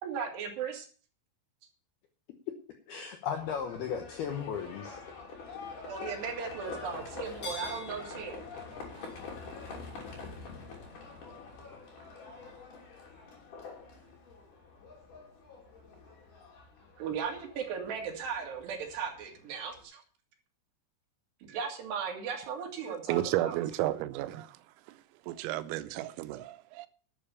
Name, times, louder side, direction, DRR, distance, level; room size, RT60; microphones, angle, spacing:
voice 1, 0.0-0.9 5.9-8.4 17.0-20.0 21.4-23.6, right 6 dB, 60° right, 3.8 m, -37 dB
voice 2, 2.9-5.0 6.6-6.8, left 7 dB, 75° left, 2.3 m, -36 dB
Livestock farm animals working animals, 3.3-19.8, left 4 dB, 45° left, 4.1 m, -45 dB
voice 3, 23.1-24.6 25.3-26.9, right 15 dB, 85° right, 3.4 m, -32 dB
12.0 x 7.6 x 6.9 m
omnidirectional pair, 5.9 m